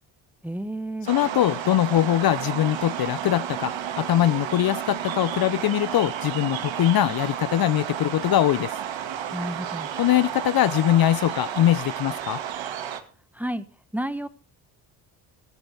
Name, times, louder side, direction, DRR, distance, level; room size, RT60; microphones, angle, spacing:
voice 1, 0.4-1.1 9.3-9.9 13.3-13.6 13.9-14.3, right 1 dB, 5° right, 1.2 m, -31 dB
voice 2, 1.1-8.7 10.0-12.4, left 12 dB, 50° left, 0.6 m, -22 dB
sound 1, 1.1-13.0, right 9 dB, 70° right, 2.0 m, -32 dB
14.0 x 14.0 x 3.4 m
supercardioid pair, 70°, 47 cm